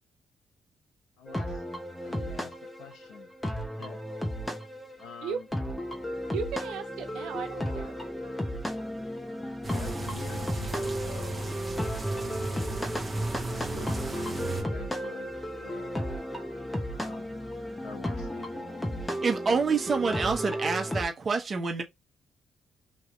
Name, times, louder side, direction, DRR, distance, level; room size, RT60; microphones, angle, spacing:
voice 1, 1.2-1.6 2.0-3.3 3.8-4.0 5.0-5.5 9.6-11.6 12.2-13.0 13.4-16.1 16.9-17.5 17.8-18.8, left 6 dB, 90° left, 1.0 m, -47 dB
sound 1, 1.3-21.0, equal, 10° left, 1.0 m, -34 dB
voice 2, 6.3-7.9, right 7 dB, 85° right, 0.6 m, -35 dB
sound 2, 9.6-14.6, right 2 dB, 20° right, 1.2 m, -35 dB
voice 3, 19.2-21.8, right 4 dB, 40° right, 1.1 m, -27 dB
3.2 x 2.8 x 2.6 m
cardioid pair, 90°, 0 cm